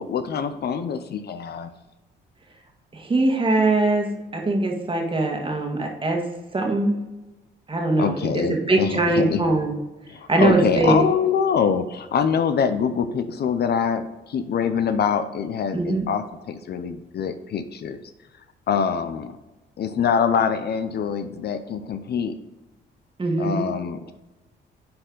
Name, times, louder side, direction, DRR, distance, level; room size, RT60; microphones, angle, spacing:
voice 1, 0.0-1.7 8.0-9.4 10.1-18.0 18.7-19.3 19.8-22.3 23.4-24.1, left 7 dB, 55° left, 10 dB, 0.6 m, -24 dB
voice 2, 2.9-4.1 4.3-6.2 6.5-6.9 7.7-9.7 10.3-11.1 15.7-16.1 23.2-23.7, right 2 dB, 25° right, 1 dB, 1.7 m, -21 dB
9.6 x 4.4 x 3.9 m, 1.1 s
cardioid pair, 90°, 20 cm